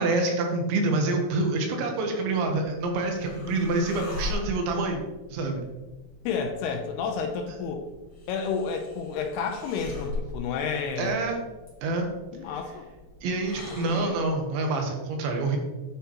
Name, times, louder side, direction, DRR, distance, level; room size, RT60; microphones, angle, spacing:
voice 1, 0.0-5.0 5.3-5.6 11.0-11.4 11.8-12.1 13.2-15.6, right 2 dB, 85° right, 3 dB, 3.5 m, -27 dB
sound 1, 2.7-14.4, left 3 dB, 45° left, 2.9 m, -41 dB
voice 2, 6.3-7.8 8.3-11.2 12.3-12.9 13.6-14.1, left 5 dB, 80° left, 3 dB, 2.5 m, -31 dB
9.4 x 6.9 x 3.0 m, 1.2 s
omnidirectional pair, 5.1 m